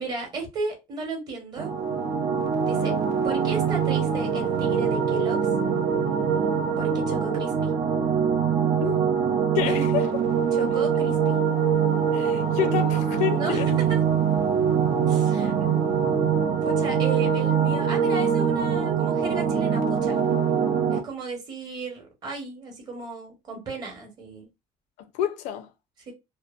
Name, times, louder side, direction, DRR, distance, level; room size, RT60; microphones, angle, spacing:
voice 1, 0.0-1.7 2.6-2.9 3.2-5.4 6.8-7.7 9.6-9.9 10.5-11.4 13.3-13.6 13.9-14.0 15.1-15.5 16.6-20.2 20.9-24.5 26.1-26.2, right 3 dB, 35° right, 0.9 m, -34 dB
sound 1, 1.6-21.0, right 7 dB, 80° right, 0.5 m, -23 dB
voice 2, 9.5-10.1 12.1-13.8 15.4-15.5 25.1-25.7, left 10 dB, 85° left, 0.4 m, -28 dB
2.7 x 2.1 x 2.3 m
cardioid pair, 165°, 12 cm